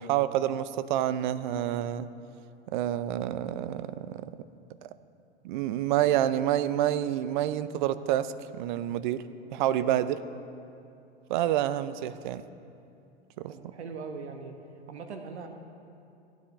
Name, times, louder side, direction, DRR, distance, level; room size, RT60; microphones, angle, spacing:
voice 1, 0.0-2.1 2.7-4.3 4.8-4.9 5.4-9.2 9.5-10.2 11.3-12.4 13.4-13.5, right 12 dB, 45° right, 14 dB, 0.5 m, -28 dB
voice 2, 9.6-9.9 13.5-14.5 14.9-15.5, right 5 dB, 75° right, 5 dB, 1.1 m, -41 dB
15.0 x 10.0 x 3.2 m, 2.6 s
hypercardioid pair, 105°, 34 cm